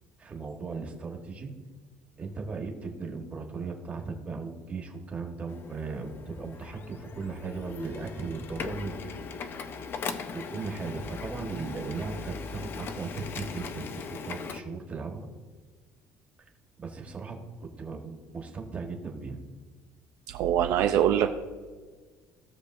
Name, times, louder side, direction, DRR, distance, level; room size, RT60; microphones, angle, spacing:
voice 1, 0.2-1.5 2.2-9.3 10.3-15.3 16.8-19.4, right 4 dB, 20° right, 1 dB, 1.4 m, -37 dB
Printer, 5.5-14.6, left 5 dB, 35° left, 0.6 m, -39 dB
voice 2, 20.3-21.3, right 10 dB, 60° right, 5 dB, 0.5 m, -23 dB
16.5 x 6.7 x 2.6 m, 1.4 s
cardioid pair, 170°, 7 cm